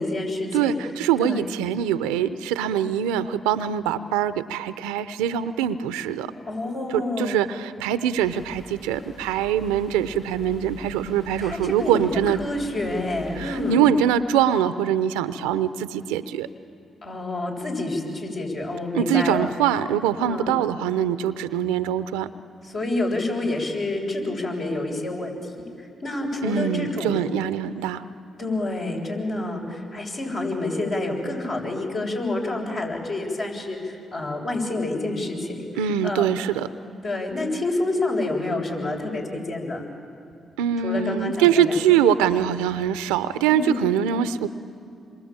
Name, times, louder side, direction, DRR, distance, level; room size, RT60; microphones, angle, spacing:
voice 1, 0.0-0.7 1.2-1.5 6.5-7.4 11.4-12.0 12.4-13.8 17.0-19.5 20.2-20.5 22.6-25.4 26.0-27.1 28.4-36.3 37.0-39.9 40.8-41.8 43.5-43.8, left 2 dB, 60° left, -2 dB, 7.0 m, -28 dB
voice 2, 0.5-6.3 6.9-12.4 13.4-16.5 18.9-22.3 26.4-28.0 35.8-36.7 40.6-44.5, right 9 dB, 85° right, 13 dB, 0.7 m, -23 dB
sound 1, 8.1-13.8, left 1 dB, 90° left, 6.4 m, -43 dB
27.5 x 23.5 x 8.9 m, 2.4 s
hypercardioid pair, 45°, 0 cm